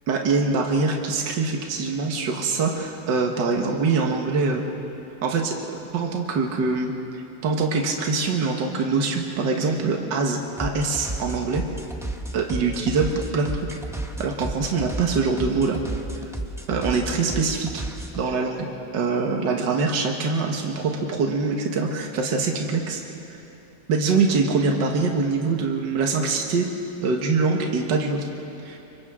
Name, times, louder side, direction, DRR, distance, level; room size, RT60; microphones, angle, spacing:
voice 1, 0.1-4.7 5.2-5.6 5.9-11.6 12.3-13.8 14.2-15.8 16.7-17.8 18.2-18.7 18.9-23.0 23.3-23.4 23.9-26.7 27.0-28.3 28.6-28.8, right 4 dB, 65° right, 1 dB, 2.0 m, -24 dB
sound 1, 10.6-18.2, right 1 dB, 5° right, 0.5 m, -33 dB
29.0 x 25.5 x 3.7 m, 2.8 s
omnidirectional pair, 2.1 m